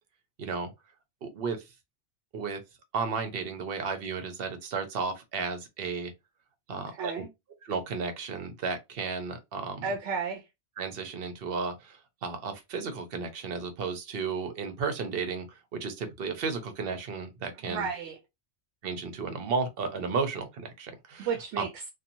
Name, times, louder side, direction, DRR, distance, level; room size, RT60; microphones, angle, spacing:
voice 1, 0.4-0.7 1.2-1.6 2.3-2.6 2.9-6.1 6.7-7.2 7.6-9.9 10.8-17.9 18.8-21.3 21.6-21.7, right 5 dB, 60° right, 0.8 m, -33 dB
voice 2, 6.9-7.3 9.8-10.4 17.6-18.2 21.2-21.9, right 5 dB, 85° right, 0.9 m, -33 dB
2.9 x 2.3 x 2.6 m
omnidirectional pair, 1.2 m